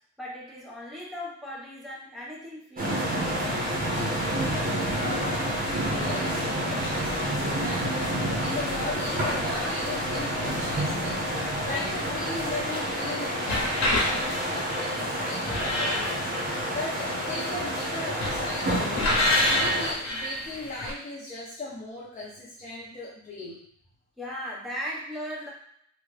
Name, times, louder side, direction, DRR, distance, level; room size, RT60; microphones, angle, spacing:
voice 1, 0.2-3.5 24.2-25.5, equal, ahead, -6 dB, 1.3 m, -37 dB
sound 1, 2.8-19.9, equal, 30° right, 1.3 m, -29 dB
sound 2, 3.4-20.9, left 1 dB, 65° left, 1.1 m, -32 dB
voice 2, 5.8-11.3 11.6-19.0 19.5-23.6, left 2 dB, 25° left, -6 dB, 0.9 m, -37 dB
3.3 x 2.5 x 3.4 m, 0.68 s
cardioid pair, 90°, 30 cm